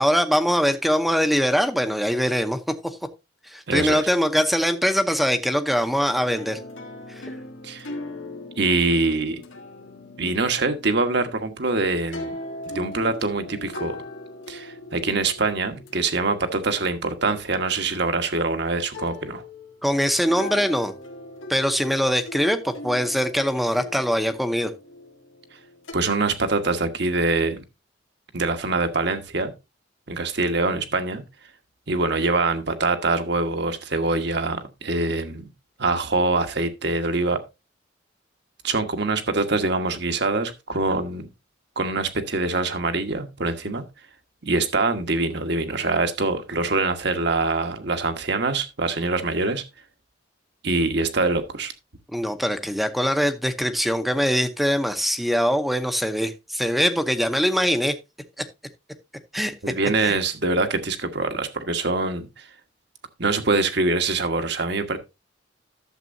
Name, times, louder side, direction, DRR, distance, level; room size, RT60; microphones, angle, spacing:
voice 1, 0.0-2.6 3.5-6.6 7.1-7.2 19.8-20.9 21.5-24.7 52.1-57.9 59.3-59.5 60.0-60.2, equal, ahead, 0.7 m, -22 dB
voice 2, 3.7-4.1 7.6-7.9 8.6-9.4 10.2-12.3 12.7-14.0 14.5-19.4 25.9-27.6 28.3-29.5 30.1-31.2 31.9-35.5 35.8-37.4 38.6-41.3 41.8-43.8 44.4-49.6 50.6-51.7 59.6-62.5 63.2-65.0, right 3 dB, 60° right, 1.3 m, -24 dB
sound 1, 6.1-18.4 18.9-25.9, left 2 dB, 90° left, 1.8 m, -40 dB
12.0 x 7.4 x 2.6 m
head